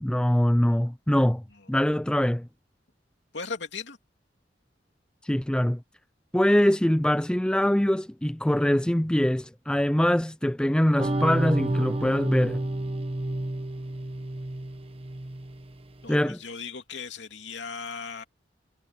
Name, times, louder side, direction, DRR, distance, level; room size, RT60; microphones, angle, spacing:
voice 1, 0.0-1.4 1.7-2.5 5.2-5.8 6.3-12.6 16.1-16.4, equal, 5° left, 0.4 m, -23 dB
voice 2, 3.3-4.0 16.0-18.2, left 5 dB, 85° left, 2.8 m, -37 dB
sound 1, 11.0-15.8, right 1 dB, 35° right, 1.2 m, -30 dB
head